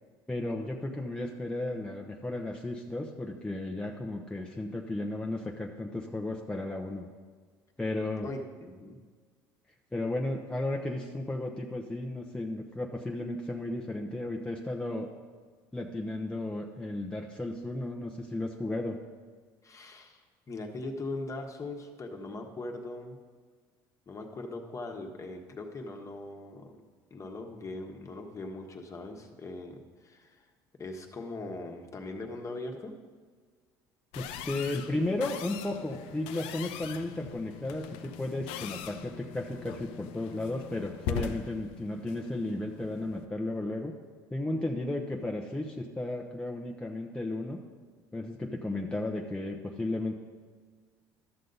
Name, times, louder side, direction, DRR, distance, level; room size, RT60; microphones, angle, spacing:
voice 1, 0.3-7.1 7.8-8.3 9.9-15.1 15.7-19.0 34.2-43.9 44.3-47.6 48.1-50.1, left 2 dB, 10° left, 0 dB, 0.9 m, -34 dB
voice 2, 8.2-9.0 19.6-23.2 24.1-26.8 27.1-30.5 30.8-32.9, left 2 dB, 30° left, 3 dB, 1.3 m, -40 dB
sound 1, 34.1-43.3, left 8 dB, 75° left, 0.6 m, -41 dB
12.5 x 6.4 x 4.0 m, 1.5 s
supercardioid pair, 80°, 10 cm